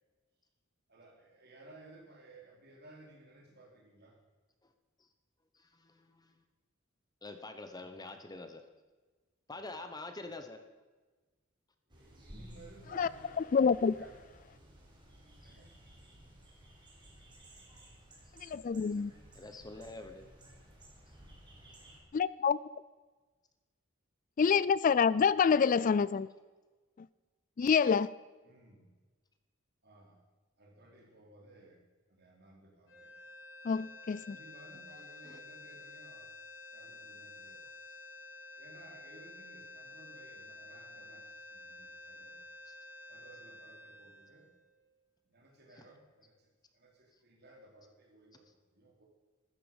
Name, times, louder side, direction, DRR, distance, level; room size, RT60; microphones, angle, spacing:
voice 1, 0.9-4.2 7.8-8.2 9.5-9.8 11.9-14.2 15.4-15.7 18.9-19.2 28.4-28.9 29.8-30.2 30.6-31.8 32.1-33.1 34.2-36.3 36.7-37.6 38.6-42.4 43.1-44.5 45.3-49.1, right 2 dB, 55° right, 0 dB, 3.9 m, -58 dB
voice 2, 5.6-6.3 7.2-8.6 9.5-10.6 15.4-15.5 19.3-20.3 35.2-35.4 42.7-42.8 45.7-45.8, left 2 dB, 20° left, 7 dB, 1.0 m, -46 dB
sound 1, 11.9-22.0, right 1 dB, 25° right, 4.1 m, -56 dB
voice 3, 13.4-13.9 18.4-19.1 22.1-22.6 24.4-26.3 27.6-28.1 33.6-34.4, left 6 dB, 40° left, 19 dB, 0.3 m, -27 dB
sound 2, 32.8-45.1, left 2 dB, 90° left, 6.4 m, -51 dB
15.0 x 13.5 x 5.4 m, 1.3 s
head